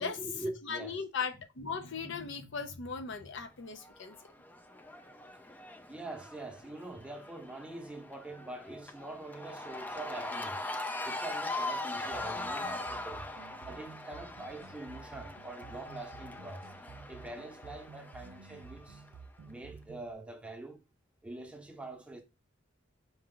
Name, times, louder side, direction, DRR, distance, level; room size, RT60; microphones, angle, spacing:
voice 1, 0.0-1.0 4.7-5.2 5.9-13.2 13.7-16.6 17.1-19.0 19.5-20.8 21.2-22.2, right 2 dB, 5° right, 0.8 m, -44 dB
voice 2, 0.6-4.1, left 5 dB, 65° left, 0.7 m, -38 dB
Cheering / Crowd, 3.8-19.1, left 2 dB, 10° left, 0.4 m, -41 dB
sound 1, 12.1-20.1, right 5 dB, 90° right, 0.4 m, -52 dB
5.4 x 2.3 x 3.7 m
head